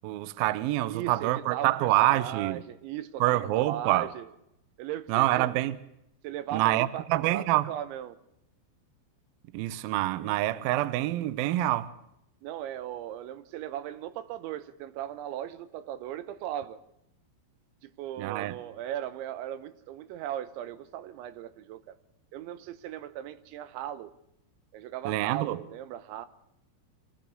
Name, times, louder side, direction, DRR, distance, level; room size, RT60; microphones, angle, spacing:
voice 1, 0.0-2.6 3.2-4.1 5.1-5.8 6.5-7.7 9.5-11.9 18.2-18.6 25.1-25.6, right 15 dB, 75° right, 2.3 m, -26 dB
voice 2, 0.8-4.3 4.8-5.5 6.2-7.0 7.3-8.2 10.2-10.3 12.4-16.8 18.0-21.9 22.3-24.1 24.7-26.3, right 12 dB, 90° right, 3.4 m, -37 dB
25.0 x 15.0 x 8.2 m
omnidirectional pair, 5.2 m